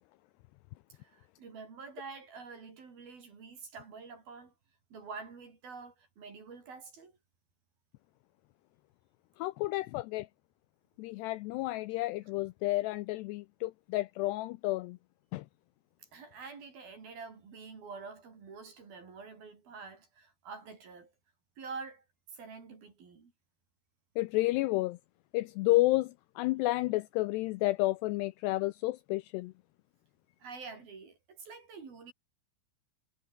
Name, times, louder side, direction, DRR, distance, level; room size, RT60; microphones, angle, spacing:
voice 1, 1.0-4.5 4.9-7.1 16.0-21.1 21.6-22.0 22.3-23.3 30.4-32.1, right 4 dB, 55° right, 6.3 m, -47 dB
voice 2, 9.4-10.3 11.0-15.0 15.3-15.5 24.2-25.0 25.3-29.5, left 19 dB, 85° left, 2.4 m, -31 dB
omnidirectional pair, 5.4 m